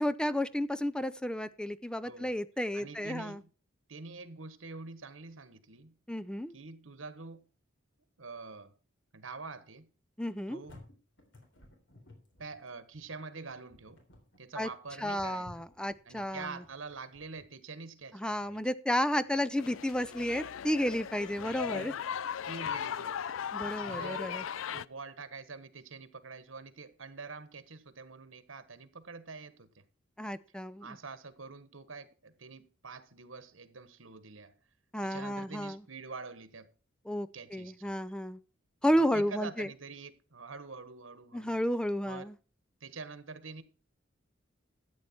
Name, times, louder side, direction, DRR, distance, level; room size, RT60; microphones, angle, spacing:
voice 1, 0.0-3.4 6.1-6.5 10.2-10.6 14.6-14.7 15.0-16.5 18.1-21.9 23.5-24.4 30.2-31.0 34.9-35.8 37.1-38.4 38.8-39.7 41.3-42.3, equal, 5° left, 0.5 m, -32 dB
voice 2, 2.7-3.5 3.9-5.9 6.5-7.4 8.2-8.7 9.1-9.9 10.5-10.8 12.4-14.0 14.4-15.6 16.0-18.6 21.6-21.9 22.5-23.3 23.6-24.3 24.7-29.8 30.8-34.5 35.0-36.7 37.3-37.9 38.9-41.6 42.0-42.3 42.8-43.6, right 4 dB, 90° right, 1.4 m, -46 dB
sound 1, 10.3-17.5, left 1 dB, 65° left, 3.5 m, -57 dB
sound 2, 19.6-24.9, left 8 dB, 80° left, 0.4 m, -37 dB
13.0 x 8.5 x 4.4 m
head